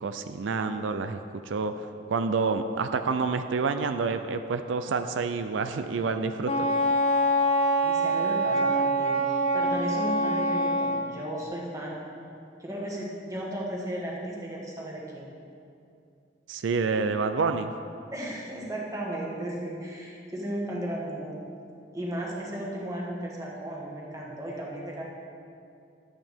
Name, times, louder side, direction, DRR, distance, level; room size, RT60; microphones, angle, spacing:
voice 1, 0.0-1.2 1.5-6.7 16.5-17.7, right 4 dB, 85° right, 8 dB, 0.4 m, -28 dB
Wind instrument woodwind instrument, 6.4-11.0, right 1 dB, 30° left, 0.6 m, -25 dB
voice 2, 7.8-12.0 12.6-15.3 18.1-21.5 21.9-25.0, right 1 dB, 20° right, -3 dB, 1.5 m, -35 dB
11.5 x 8.8 x 3.6 m, 2.5 s
head